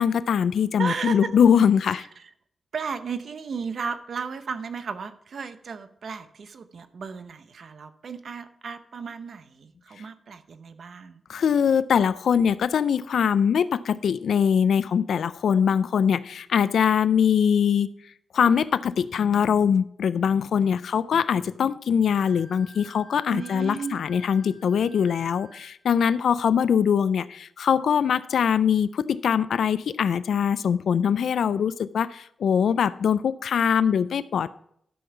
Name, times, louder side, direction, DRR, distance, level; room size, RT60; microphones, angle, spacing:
voice 1, 0.0-2.1 11.3-17.9 18.3-34.5, left 7 dB, 80° left, 15 dB, 0.3 m, -22 dB
voice 2, 0.8-1.3 1.9-2.3 2.7-11.2 23.3-24.0, right 5 dB, 60° right, 11 dB, 0.7 m, -34 dB
Wind instrument woodwind instrument, 22.1-25.8, equal, 25° right, 1.3 m, -51 dB
12.5 x 5.5 x 5.7 m, 0.70 s
wide cardioid pair, 145°, 0 cm